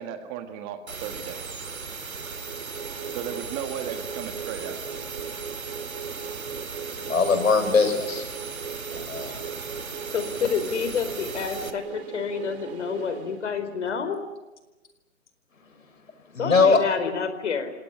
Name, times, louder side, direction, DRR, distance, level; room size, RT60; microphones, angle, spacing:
voice 1, 0.0-1.4 3.1-4.8, right 9 dB, 25° right, 7 dB, 1.9 m, -35 dB
sound 1, 0.9-11.7, right 4 dB, 85° right, 2.7 m, -37 dB
sound 2, 2.2-14.0, right 7 dB, 50° right, 4.0 m, -39 dB
voice 2, 7.0-8.3 8.9-9.4 16.3-16.8, left 4 dB, 75° left, 8 dB, 6.4 m, -21 dB
voice 3, 10.1-14.2 16.4-17.7, left 6 dB, 60° left, 10 dB, 4.6 m, -29 dB
29.5 x 18.0 x 9.6 m, 1.1 s
hypercardioid pair, 140°, 40 cm